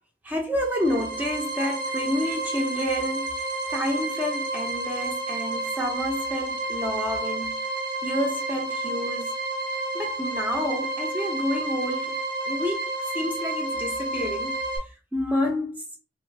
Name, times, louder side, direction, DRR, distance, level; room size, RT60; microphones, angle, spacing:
voice 1, 0.2-3.3 3.7-7.6 8.0-9.3 9.9-12.2 12.5-14.6 15.1-15.8, left 1 dB, 10° right, 0.8 m, -29 dB
sound 1, 0.6-14.8, right 2 dB, 75° right, 1.0 m, -30 dB
3.2 x 2.1 x 3.3 m
head